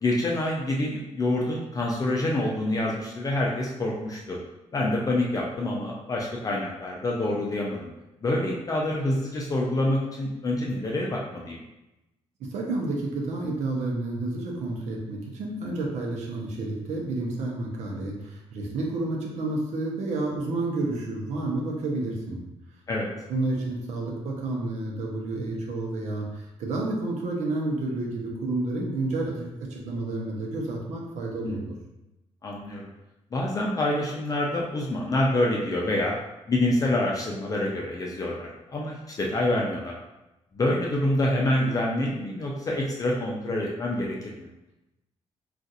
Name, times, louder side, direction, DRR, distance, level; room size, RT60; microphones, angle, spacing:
voice 1, 0.0-4.4 4.7-7.9 8.2-11.6 22.9-23.1 31.4-31.6 32.4-32.9 33.3-36.1 36.5-39.9 40.5-44.5, left 1 dB, 30° left, -2 dB, 0.5 m, -27 dB
voice 2, 12.4-22.4 23.3-31.7, right 2 dB, 85° right, -1 dB, 0.7 m, -30 dB
2.5 x 2.4 x 4.0 m, 0.95 s
cardioid pair, 125°, 12 cm